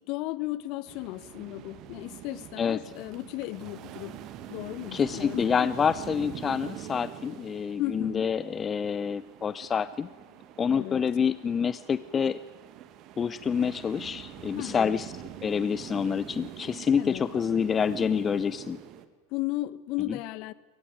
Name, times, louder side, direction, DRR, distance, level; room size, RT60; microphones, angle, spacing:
voice 1, 0.1-4.2 4.5-5.7 7.8-8.3 10.7-11.0 14.6-15.0 17.0-17.3 19.3-20.5, left 18 dB, 50° left, 18 dB, 1.1 m, -35 dB
sound 1, 0.9-19.1, right 11 dB, 45° right, 1.9 m, -44 dB
voice 2, 4.9-10.1 10.6-12.4 13.2-15.1 15.4-18.8 20.0-20.2, left 7 dB, 25° left, 16 dB, 0.7 m, -27 dB
23.0 x 19.5 x 9.5 m, 1.3 s
hypercardioid pair, 90°, 0 cm